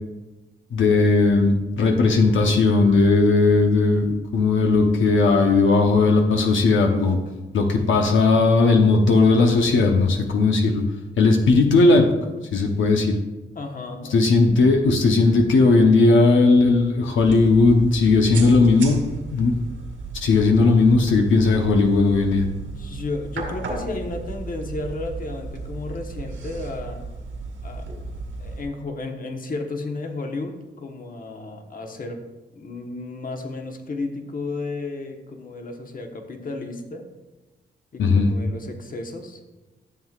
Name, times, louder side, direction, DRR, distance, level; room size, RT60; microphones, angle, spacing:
voice 1, 0.7-7.2 7.5-10.8 11.2-12.1 12.5-13.2 14.1-19.0 19.3-19.6 20.1-22.4 38.0-38.3, left 3 dB, 85° left, 3 dB, 0.9 m, -17 dB
voice 2, 13.5-14.2 22.7-27.1 27.6-28.0 28.4-32.2 32.5-37.1 37.9-39.4, left 2 dB, 45° left, 4 dB, 1.1 m, -33 dB
sound 1, 17.2-28.6, right 3 dB, 90° right, 2.7 m, -35 dB
13.0 x 7.4 x 2.4 m, 1.1 s
cardioid pair, 100°, 20 cm